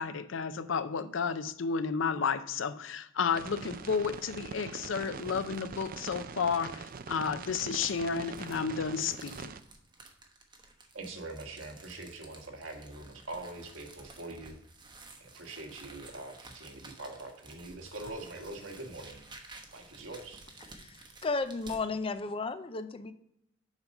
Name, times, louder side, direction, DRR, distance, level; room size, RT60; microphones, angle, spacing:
voice 1, 0.0-9.5, left 5 dB, 80° left, 0.5 m, -32 dB
sound 1, 3.3-9.6, right 5 dB, 45° right, 0.4 m, -43 dB
sound 2, 3.5-4.1 4.5-4.6 5.2-5.8 6.6-21.8, right 3 dB, 25° right, 1.1 m, -53 dB
voice 2, 10.9-14.6 15.2-19.2 19.7-20.4, right 2 dB, 90° right, 1.6 m, -43 dB
voice 3, 21.2-23.1, left 3 dB, 30° left, 0.5 m, -33 dB
7.2 x 5.3 x 5.3 m
head